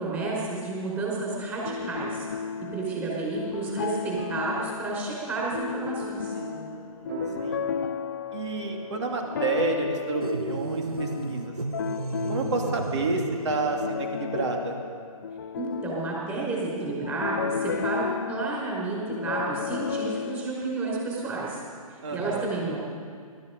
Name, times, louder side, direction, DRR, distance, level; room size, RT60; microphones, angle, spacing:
voice 1, 0.0-2.3 2.7-6.3 15.5-21.6 21.9-22.8, right 3 dB, 10° right, -5 dB, 5.0 m, -31 dB
sound 1, 1.5-20.5, left 7 dB, 35° left, 0.3 m, -34 dB
sound 2, 3.8-13.4, right 1 dB, 35° right, 3.1 m, -44 dB
voice 2, 6.3-7.6 8.3-11.5 12.3-14.8 22.0-22.5, right 3 dB, 50° right, 2 dB, 2.8 m, -30 dB
sound 3, 10.2-13.7, right 3 dB, 80° right, 0.9 m, -33 dB
20.5 x 13.0 x 5.3 m, 2.1 s
figure-of-eight pair, 135°, 19 cm